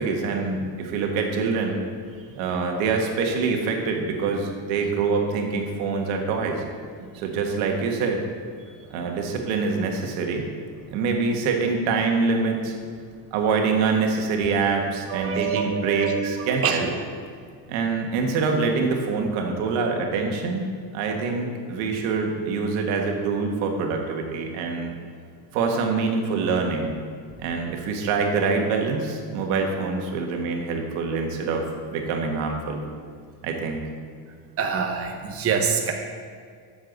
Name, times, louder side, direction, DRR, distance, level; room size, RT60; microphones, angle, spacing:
voice 1, 0.0-1.8 2.3-6.6 7.1-8.2 8.9-10.5 10.9-12.7 13.3-16.9 17.7-20.7 20.9-24.9 25.5-26.9 27.4-32.8 33.4-33.9, right 4 dB, 90° right, 2 dB, 1.7 m, -25 dB
voice 2, 15.1-16.8 34.6-35.9, right 6 dB, 30° right, 3 dB, 1.0 m, -26 dB
13.0 x 7.1 x 4.0 m, 2.1 s
cardioid pair, 140°, 47 cm